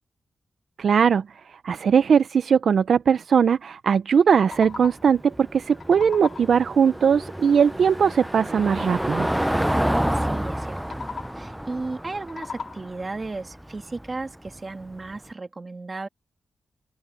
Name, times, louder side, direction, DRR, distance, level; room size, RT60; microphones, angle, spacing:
voice 1, 0.8-1.3 1.5-9.3, right 7 dB, 60° right, 0.5 m, -20 dB
sound 1, 4.1-5.2 5.5-6.7 10.7-11.6 12.0-13.1, left 5 dB, 50° left, 4.2 m, -39 dB
Car passing by / Engine, 4.5-15.2, equal, 5° right, 0.4 m, -29 dB
voice 2, 10.1-11.0 11.4-16.1, right 3 dB, 25° right, 2.2 m, -35 dB
wide cardioid pair, 165°, 0 cm